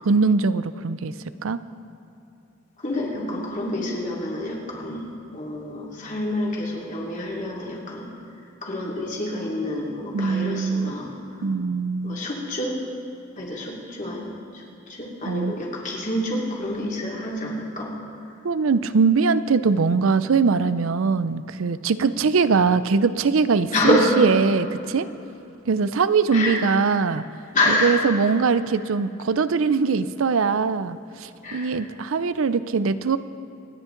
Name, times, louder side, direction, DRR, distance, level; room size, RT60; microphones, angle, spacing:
voice 1, 0.1-1.1 1.4-1.6 10.1-10.9 11.4-12.2 15.3-15.5 18.4-25.1 25.7-27.2 27.7-33.2, right 5 dB, 90° right, 14 dB, 0.5 m, -22 dB
voice 2, 2.8-8.1 8.6-11.5 12.0-12.8 13.4-17.9 23.7-24.2 26.3-27.0 27.5-28.0 31.4-31.9, left 1 dB, 40° left, -3 dB, 2.6 m, -27 dB
26.5 x 10.0 x 3.9 m, 2.9 s
head